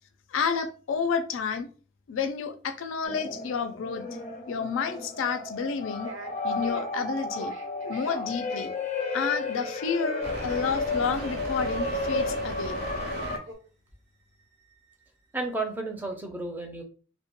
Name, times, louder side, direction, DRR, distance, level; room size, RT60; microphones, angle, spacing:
voice 1, 0.3-1.7 2.1-4.1 4.5-6.1 6.4-7.5 7.9-8.7 9.1-12.8, left 6 dB, 90° left, 0.4 m, -30 dB
sound 1, 3.1-13.4, left 3 dB, 35° left, 0.6 m, -33 dB
sound 2, 6.0-6.9 7.3-11.2 12.7-13.5, right 1 dB, 85° right, 0.8 m, -43 dB
sound 3, 10.2-13.4, right 2 dB, 50° right, 0.6 m, -36 dB
voice 2, 15.3-16.8, right 2 dB, 10° right, 0.4 m, -33 dB
2.1 x 2.1 x 2.9 m
head